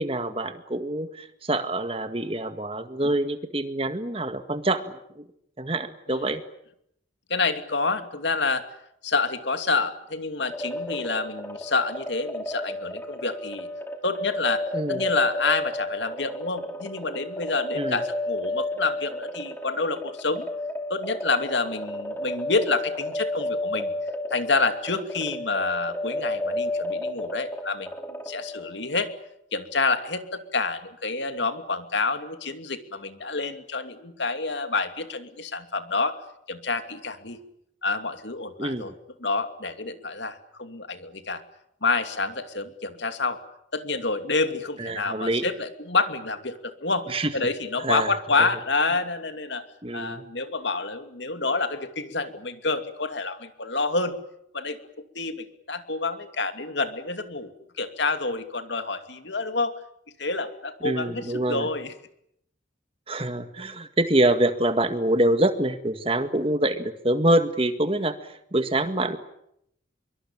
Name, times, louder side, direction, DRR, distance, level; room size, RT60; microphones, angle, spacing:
voice 1, 0.0-5.2 5.6-6.4 14.7-15.0 17.8-18.0 38.6-38.9 44.8-45.4 47.1-47.3 47.8-48.1 48.4-48.5 49.8-50.2 60.8-61.7 63.1-69.2, right 1 dB, 30° right, 9 dB, 1.9 m, -25 dB
voice 2, 7.3-8.7 9.0-13.7 14.0-20.5 20.9-23.9 24.3-29.1 29.5-36.2 36.5-37.4 37.8-38.9 39.2-41.4 41.8-43.4 43.7-49.6 49.9-54.2 54.5-54.8 55.1-57.5 57.8-59.8 60.2-61.9, left 3 dB, 70° left, 8 dB, 2.7 m, -28 dB
sound 1, 10.5-28.9, left 1 dB, 10° left, 3.2 m, -32 dB
25.0 x 23.5 x 8.9 m, 0.76 s
head